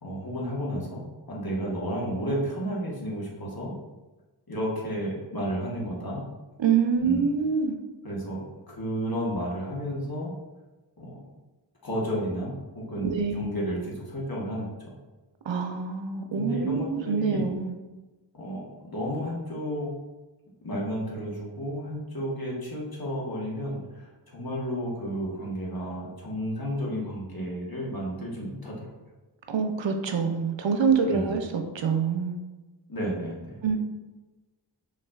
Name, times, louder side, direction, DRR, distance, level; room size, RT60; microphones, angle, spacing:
voice 1, 0.0-3.7 4.5-6.3 7.0-7.3 8.0-10.3 11.0-11.2 11.8-14.9 16.4-17.5 18.3-20.0 20.6-28.9 31.1-31.3 32.9-33.8, equal, 50° left, -4 dB, 1.1 m, -32 dB
voice 2, 6.6-7.8 13.0-13.6 15.5-17.7 29.5-32.4 33.6-33.8, right 6 dB, 80° right, 5 dB, 0.5 m, -26 dB
5.6 x 2.4 x 2.3 m, 1.2 s
wide cardioid pair, 50°, 45 cm